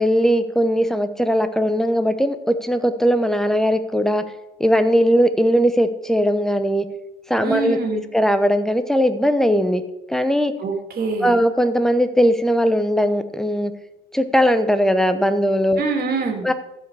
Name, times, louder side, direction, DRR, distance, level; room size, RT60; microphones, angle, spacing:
voice 1, 0.0-4.2 4.6-6.8 7.3-9.8 10.1-10.5 11.2-13.7 14.1-15.8 16.4-16.5, equal, ahead, 10 dB, 0.9 m, -19 dB
voice 2, 7.4-8.0 10.6-11.4 15.8-16.5, right 4 dB, 45° right, 3 dB, 2.7 m, -24 dB
15.0 x 5.1 x 4.9 m, 0.96 s
supercardioid pair, 85°, 21 cm